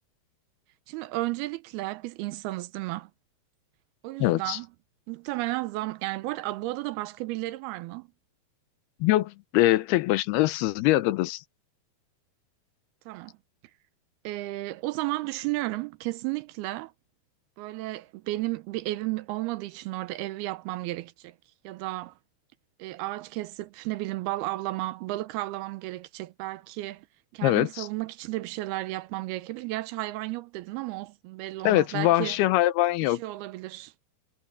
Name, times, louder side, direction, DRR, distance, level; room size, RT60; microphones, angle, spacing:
voice 1, 0.9-3.1 4.0-4.7 5.1-8.1 13.1-13.4 14.2-16.9 17.6-21.4 21.6-22.2 22.8-27.1 27.3-32.4 33.0-33.9, right 18 dB, 85° right, 2.6 m, -33 dB
voice 2, 4.2-4.6 9.0-11.4 27.4-27.9 31.6-33.2, left 16 dB, 85° left, 2.7 m, -23 dB
omnidirectional pair, 4.6 m